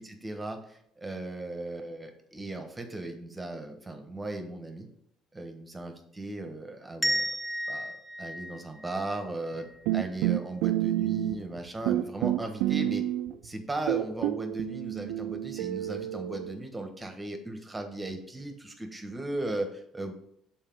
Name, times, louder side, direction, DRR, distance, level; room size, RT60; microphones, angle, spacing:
voice 1, 0.0-4.9 5.3-7.3 7.7-9.6 9.9-13.0 13.4-20.1, right 2 dB, 15° right, 5 dB, 1.2 m, -37 dB
sound 1, 7.0-9.8, equal, 15° left, 0.9 m, -33 dB
sound 2, 9.9-11.6 11.9-13.5 13.9-16.5, right 14 dB, 80° right, 0.3 m, -29 dB
5.6 x 4.4 x 5.3 m, 0.71 s
supercardioid pair, 75°, 0 cm